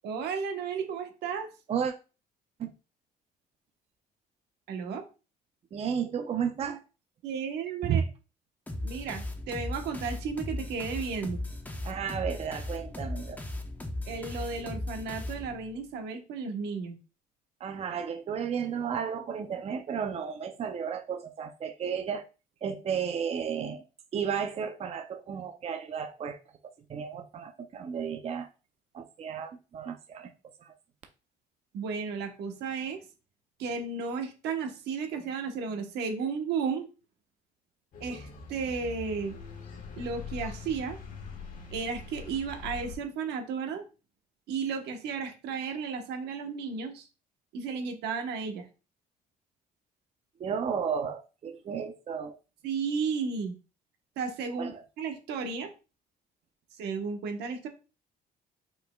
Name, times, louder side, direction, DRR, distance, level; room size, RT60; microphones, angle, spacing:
voice 1, 0.0-1.5 4.7-5.0 7.2-8.0 8.8-11.4 14.1-17.0 31.7-33.0 33.6-36.9 38.0-39.4 40.0-41.0 41.7-43.8 44.5-47.1 47.5-48.7 52.6-53.5 54.2-54.7 55.0-55.7 56.7-57.7, right 5 dB, 80° right, 5 dB, 1.1 m, -33 dB
voice 2, 5.7-6.8 7.8-8.0 11.8-13.4 17.6-22.3 22.6-23.8 24.1-26.4 26.9-28.5 28.9-30.3 30.6-30.7 50.4-52.4 54.6-54.8, right 7 dB, 35° right, 6 dB, 0.6 m, -33 dB
sound 1, 8.7-15.8, left 1 dB, 10° left, 0.7 m, -37 dB
sound 2, 37.9-43.0, left 5 dB, 50° left, 1.5 m, -43 dB
5.4 x 4.2 x 2.3 m, 0.31 s
cardioid pair, 110°, 17 cm